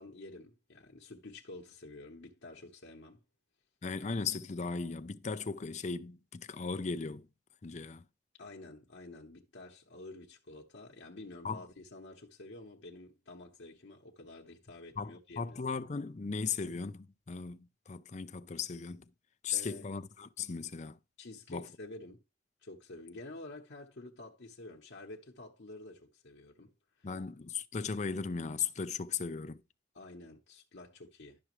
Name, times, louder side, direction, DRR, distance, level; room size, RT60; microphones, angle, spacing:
voice 1, 0.0-3.2 8.4-15.6 19.5-19.9 21.2-22.2 22.6-27.2 29.9-31.4, left 2 dB, 90° left, 1.0 m, -49 dB
voice 2, 3.8-7.3 7.6-8.0 11.4-11.6 15.0-17.6 17.9-19.0 19.4-21.0 21.5-21.7 27.0-29.6, left 5 dB, 40° left, 0.5 m, -37 dB
11.5 x 5.9 x 3.1 m
head